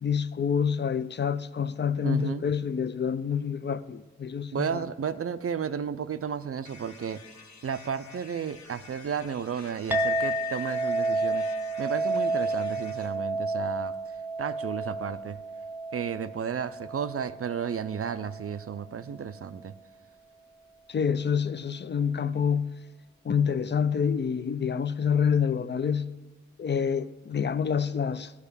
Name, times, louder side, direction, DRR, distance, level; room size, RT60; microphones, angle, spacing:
voice 1, 0.0-4.8 20.9-22.7 23.2-26.1 26.6-28.3, left 7 dB, 35° left, 0.5 m, -27 dB
voice 2, 2.0-2.5 4.5-7.2 7.6-11.5 11.8-14.1 14.4-15.4 15.9-19.7, right 7 dB, 50° right, 0.5 m, -33 dB
sound 1, 6.6-13.1, left 4 dB, 70° left, 1.0 m, -50 dB
Chink clink, 9.9-18.6, right 2 dB, 5° right, 0.8 m, -31 dB
11.5 x 4.8 x 6.9 m
cardioid pair, 50°, 30 cm